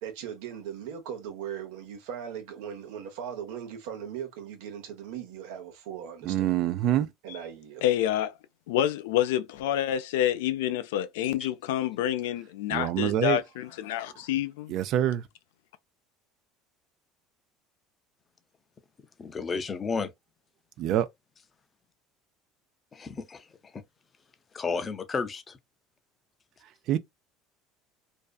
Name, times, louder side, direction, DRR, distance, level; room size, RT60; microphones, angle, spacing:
voice 1, 0.0-6.6 7.2-7.8, right 8 dB, 80° right, 0.7 m, -39 dB
voice 2, 6.2-7.1 12.7-13.4 14.7-15.2 20.8-21.1 26.9-27.0, right 12 dB, 60° right, 0.3 m, -25 dB
voice 3, 7.8-8.3 8.7-14.7, left 12 dB, 90° left, 0.3 m, -28 dB
voice 4, 19.2-20.1 22.9-23.5 23.7-23.8 24.5-25.6, left 4 dB, 25° left, 0.4 m, -32 dB
2.6 x 2.3 x 2.2 m
supercardioid pair, 105°, 0 cm